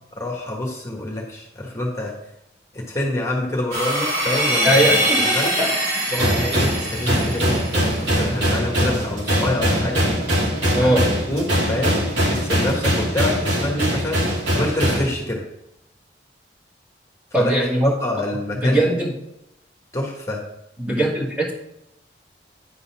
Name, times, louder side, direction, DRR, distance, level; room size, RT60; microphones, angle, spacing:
voice 1, 0.1-2.1 2.7-4.9 5.2-5.5 6.1-10.1 10.8-10.9 11.3-15.4 17.4-17.5 17.8-18.9 19.9-20.4, left 1 dB, 15° left, -2 dB, 1.3 m, -26 dB
sound 1, 3.7-8.1, right 1 dB, 65° right, 3.4 m, -23 dB
voice 2, 4.6-5.7 10.7-11.1 17.3-17.9 18.6-19.1 20.8-21.5, right 1 dB, 5° right, -3 dB, 1.5 m, -20 dB
sound 2, 6.2-15.1, equal, 80° right, 2.6 m, -22 dB
9.8 x 4.1 x 5.7 m, 0.85 s
head